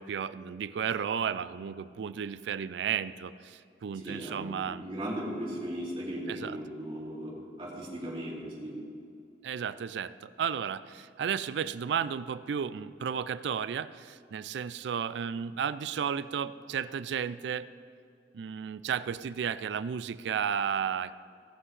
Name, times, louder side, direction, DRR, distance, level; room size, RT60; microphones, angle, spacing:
voice 1, 0.0-4.8 6.3-6.6 9.4-17.7 18.3-21.2, right 7 dB, 70° right, 16 dB, 0.3 m, -33 dB
voice 2, 3.9-8.7, equal, 30° right, -6 dB, 2.6 m, -37 dB
17.0 x 7.6 x 3.2 m, 2.4 s
head